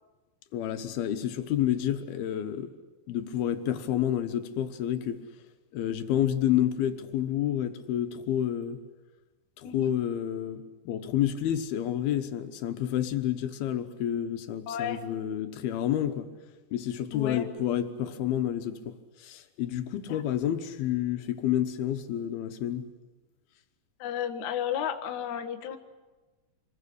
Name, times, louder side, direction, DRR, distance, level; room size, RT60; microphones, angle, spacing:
voice 1, 0.5-2.7 3.1-5.3 5.7-8.8 9.6-16.3 16.7-22.9, left 11 dB, 85° left, 3.1 m, -29 dB
voice 2, 14.7-15.0 17.1-17.4 20.1-20.2 24.0-25.8, left 9 dB, 60° left, 2.4 m, -33 dB
26.5 x 21.5 x 8.5 m
omnidirectional pair, 4.3 m